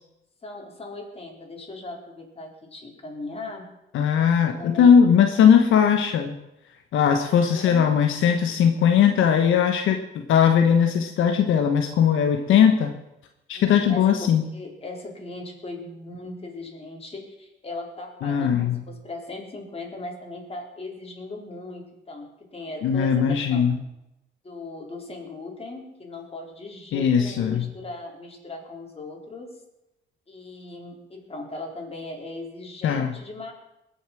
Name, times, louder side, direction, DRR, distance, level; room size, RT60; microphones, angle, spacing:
voice 1, 0.4-3.7 4.4-4.9 5.3-5.5 7.2-7.9 13.5-23.7 24.4-29.5 30.3-33.5, left 2 dB, 30° left, 0 dB, 4.2 m, -38 dB
voice 2, 3.9-6.4 6.9-12.9 13.5-14.4 18.2-18.8 22.8-23.8 26.9-27.7 32.8-33.1, left 8 dB, 80° left, 5 dB, 1.3 m, -19 dB
21.5 x 7.2 x 6.2 m, 0.89 s
cardioid pair, 90°, 20 cm